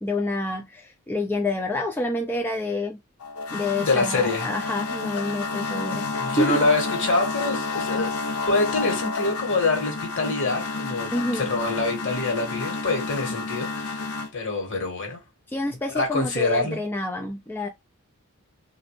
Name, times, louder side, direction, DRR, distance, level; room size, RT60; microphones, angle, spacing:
voice 1, 0.0-3.0 3.5-6.0 6.4-6.6 11.1-11.5 15.5-17.7, left 2 dB, 10° left, 0.3 m, -28 dB
sound 1, 3.2-14.3, left 4 dB, 85° left, 0.6 m, -30 dB
voice 2, 3.5-4.5 6.1-8.2 8.5-15.2 15.9-16.8, left 3 dB, 60° left, 1.4 m, -25 dB
3.0 x 2.5 x 3.0 m
head